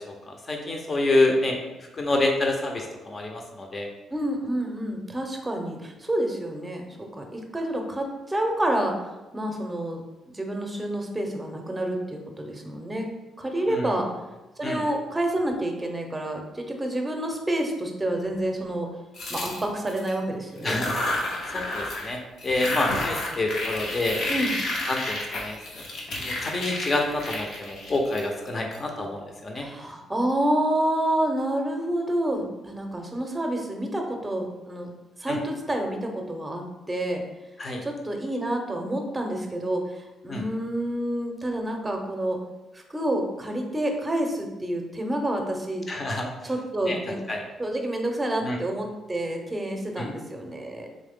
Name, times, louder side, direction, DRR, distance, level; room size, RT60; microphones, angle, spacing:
voice 1, 0.0-1.6 2.0-3.9 13.7-13.9 14.6-14.8 20.6-21.0 21.5-22.2 22.4-24.2 24.9-25.8 26.2-29.7 35.3-35.4 37.6-37.8 40.3-40.4 45.9-46.3 46.8-47.0 47.3-47.4 48.4-48.6 50.0-50.1, left 2 dB, 35° left, 2 dB, 0.8 m, -27 dB
voice 2, 4.1-9.1 9.3-10.0 10.3-13.1 13.4-14.1 14.6-18.9 19.3-20.9 24.3-24.6 29.6-34.9 35.2-37.2 37.8-42.4 42.7-45.9 46.4-47.2 47.6-50.9, right 1 dB, 15° right, 3 dB, 0.8 m, -28 dB
sound 1, 19.1-20.1 20.6-22.1 22.4-28.8, left 2 dB, 70° left, 1.0 m, -31 dB
3.8 x 3.1 x 3.6 m, 1.1 s
cardioid pair, 90°, 0 cm